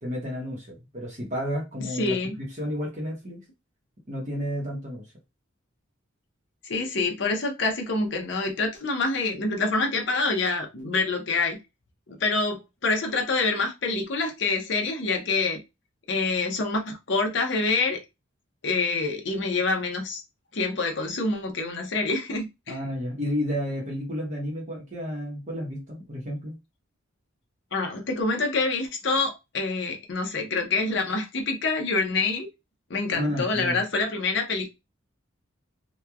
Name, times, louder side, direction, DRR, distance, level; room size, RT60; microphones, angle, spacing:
voice 1, 0.0-3.4 4.1-5.1 22.7-26.6 33.1-33.8, equal, 35° right, 0.8 m, -31 dB
voice 2, 1.9-2.4 6.6-11.6 12.1-15.6 16.1-18.0 18.6-20.2 20.5-22.8 27.7-32.5 32.9-34.7, left 3 dB, 60° left, 0.7 m, -26 dB
3.0 x 2.2 x 2.3 m
head